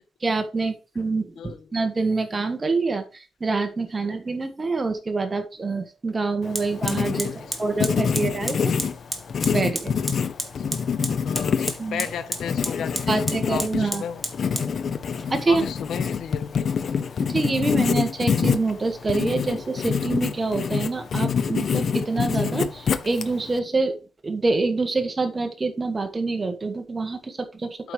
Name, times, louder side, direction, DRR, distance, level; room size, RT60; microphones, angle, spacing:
voice 1, 0.2-3.0 3.4-7.3 7.6-8.7 9.5-10.0 11.8-12.0 13.1-14.0 15.3-15.6 17.2-24.0 24.2-27.9, right 3 dB, 25° right, 1.5 m, -26 dB
voice 2, 1.4-1.7 6.6-6.7 7.2-7.9 10.7-10.8 11.2-14.2 15.5-17.0 27.8-27.9, left 8 dB, 85° left, 0.9 m, -35 dB
Fire, 5.5-5.6 6.5-20.5, right 1 dB, 5° right, 1.7 m, -36 dB
Writing, 6.4-23.6, left 6 dB, 55° left, 0.7 m, -26 dB
8.4 x 5.2 x 4.9 m
wide cardioid pair, 130°, 0 cm